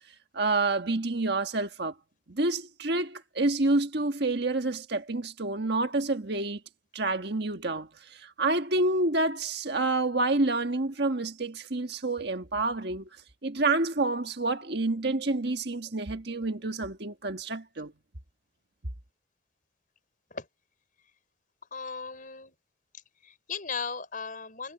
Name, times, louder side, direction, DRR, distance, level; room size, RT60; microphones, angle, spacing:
voice 1, 0.3-1.9 2.3-6.6 6.9-13.1 13.4-17.9, right 2 dB, 55° right, 1.6 m, -28 dB
voice 2, 21.7-22.5 23.2-24.7, left 5 dB, 40° left, 5.3 m, -37 dB
head